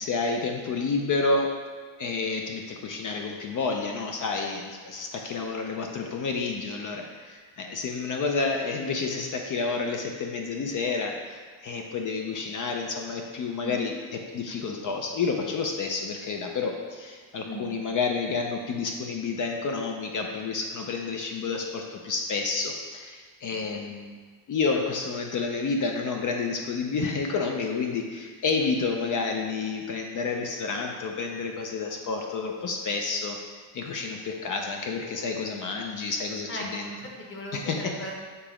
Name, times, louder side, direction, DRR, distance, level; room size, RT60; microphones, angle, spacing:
voice 1, 0.0-1.5 2.0-13.9 14.3-24.2 24.5-33.4 33.7-36.9 37.5-37.8, left 4 dB, 40° left, 2 dB, 0.6 m, -30 dB
voice 2, 13.6-13.9 17.4-17.7 23.5-23.8 36.5-38.1, equal, 25° left, -1 dB, 1.1 m, -38 dB
6.9 x 2.9 x 4.9 m, 1.5 s
cardioid pair, 125°, 48 cm